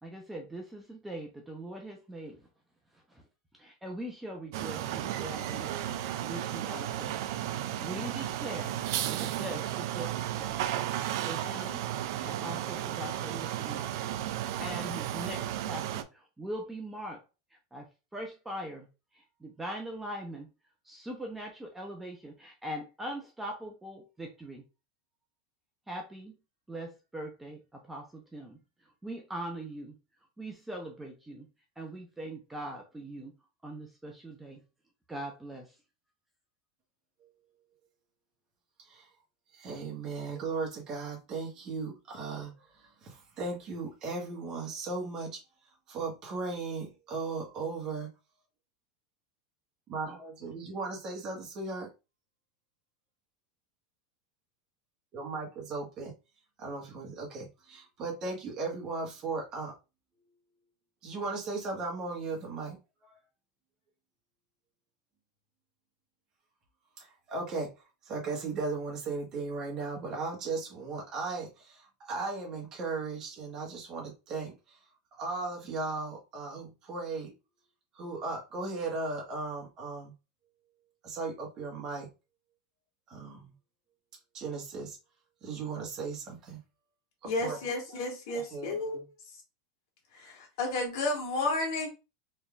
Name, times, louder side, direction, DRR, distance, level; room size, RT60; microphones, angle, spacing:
voice 1, 0.0-2.5 2.9-3.2 3.6-5.7 6.2-8.8 9.1-10.7 11.2-11.8 12.2-13.8 14.6-17.2 17.7-18.9 19.1-20.5 20.8-24.6 25.9-26.3 26.7-29.9 30.4-31.5 31.8-33.3 33.6-34.6 35.1-35.8, right 1 dB, 5° right, 0.7 m, -41 dB
sound 1, 4.5-16.0, right 12 dB, 65° right, 0.4 m, -34 dB
voice 2, 39.5-45.4 45.9-48.1 49.9-51.9 55.1-56.1 56.6-59.7 61.0-62.8 63.0-63.1 67.0-67.7 68.0-74.8 75.2-77.3 77.9-80.1 81.0-82.1 83.1-83.5 84.3-85.0 85.4-86.6 87.2-87.6 87.9-88.0 88.3-89.0, right 3 dB, 30° right, 1.6 m, -37 dB
voice 3, 87.2-89.0 90.1-91.9, left 2 dB, 70° left, 2.0 m, -32 dB
4.2 x 3.5 x 2.5 m
supercardioid pair, 145°, 2 cm